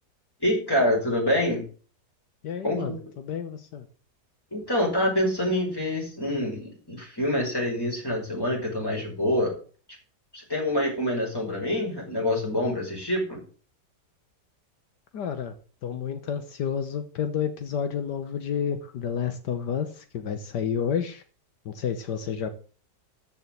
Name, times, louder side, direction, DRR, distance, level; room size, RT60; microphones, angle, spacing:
voice 1, 0.4-1.7 2.6-3.0 4.5-9.6 10.3-13.4, left 1 dB, 15° left, -1 dB, 5.5 m, -26 dB
voice 2, 2.4-3.9 15.1-15.5 15.8-21.2 21.6-22.5, left 7 dB, 80° left, 8 dB, 1.7 m, -30 dB
14.0 x 5.6 x 7.8 m, 0.39 s
omnidirectional pair, 1.8 m